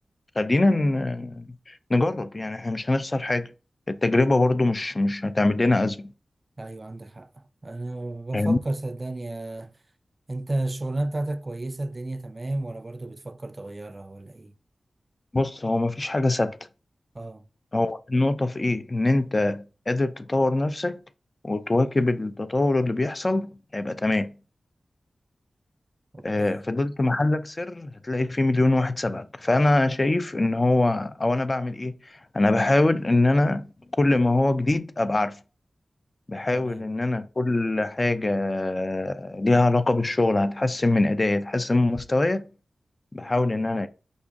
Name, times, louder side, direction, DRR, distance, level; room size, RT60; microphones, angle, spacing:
voice 1, 0.4-3.5 3.9-6.0 8.3-8.6 15.3-16.6 17.7-21.0 21.4-24.3 26.2-31.9 32.3-33.7 34.0-35.4 36.3-42.4 43.1-43.9, left 2 dB, 40° left, 0.4 m, -23 dB
voice 2, 6.6-9.7 10.3-14.5 17.1-17.4 26.1-26.6 36.5-36.9, right 2 dB, 40° right, 0.4 m, -33 dB
5.2 x 2.4 x 3.5 m
cardioid pair, 45°, 0 cm